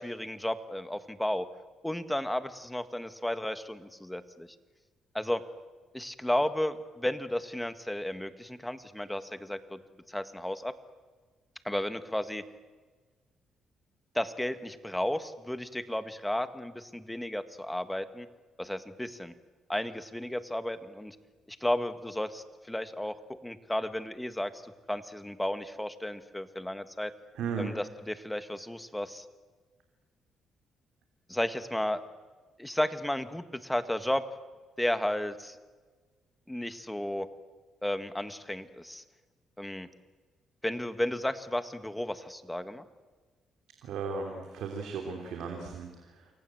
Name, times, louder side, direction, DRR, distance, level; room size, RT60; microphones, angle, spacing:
voice 1, 0.0-1.5 1.8-4.5 5.1-5.4 5.9-9.8 10.1-10.7 11.6-12.4 14.1-18.3 18.6-19.3 19.7-21.1 21.5-27.1 27.6-29.2 31.3-32.0 32.6-34.2 34.8-35.6 36.5-37.3 37.8-39.0 39.6-39.9 40.6-42.8, left 1 dB, 5° left, 11 dB, 1.7 m, -33 dB
voice 2, 27.3-27.7 43.8-46.3, right 5 dB, 80° right, 3 dB, 3.5 m, -36 dB
28.5 x 23.5 x 7.9 m, 1.4 s
cardioid pair, 90°, 0 cm